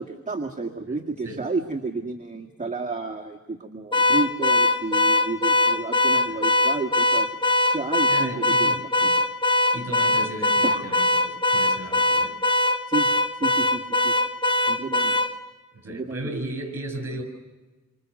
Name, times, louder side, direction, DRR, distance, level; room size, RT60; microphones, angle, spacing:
voice 1, 0.0-7.4 7.6-9.3 10.6-10.8 12.9-13.1 13.4-14.1 14.7-15.2 15.9-16.4, right 3 dB, 25° right, 2 dB, 1.8 m, -31 dB
Car / Alarm, 3.9-15.3, left 2 dB, 15° left, 1.1 m, -21 dB
voice 2, 8.1-8.8 9.7-12.4 15.7-17.2, right 2 dB, 50° right, 5 dB, 7.6 m, -35 dB
28.5 x 25.5 x 6.5 m, 1.2 s
wide cardioid pair, 120°, 30 cm